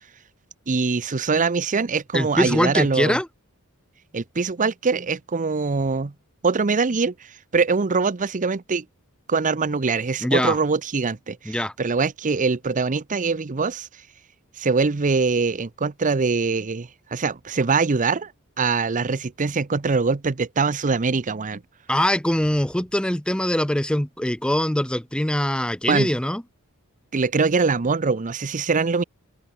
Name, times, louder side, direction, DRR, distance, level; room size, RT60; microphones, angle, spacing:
voice 1, 0.7-3.2 4.1-6.1 6.4-8.8 9.3-13.9 14.6-18.3 18.6-21.6 25.9-26.1 27.1-29.0, right 4 dB, 35° right, 0.7 m, -23 dB
voice 2, 2.1-3.3 10.2-10.6 11.5-11.7 21.9-26.4, left 1 dB, 5° left, 0.7 m, -22 dB
open air
head